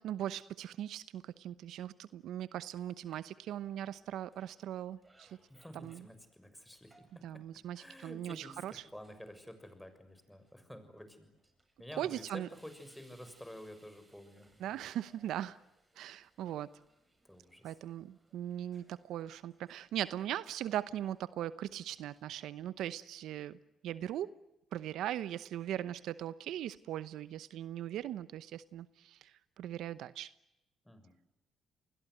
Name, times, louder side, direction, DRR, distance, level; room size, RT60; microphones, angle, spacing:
voice 1, 0.0-5.4 5.7-6.0 7.2-8.8 12.0-12.5 14.6-15.6 16.0-16.7 17.6-23.6 23.8-24.3 24.7-30.3, right 11 dB, 75° right, 0.9 m, -39 dB
sound 1, 2.7-22.4, right 2 dB, 20° right, 8.0 m, -70 dB
voice 2, 5.5-7.4 7.7-11.3 11.8-14.9 17.2-17.8 30.8-31.1, equal, 5° left, 6.7 m, -51 dB
29.5 x 21.5 x 7.9 m
supercardioid pair, 70°, 0 cm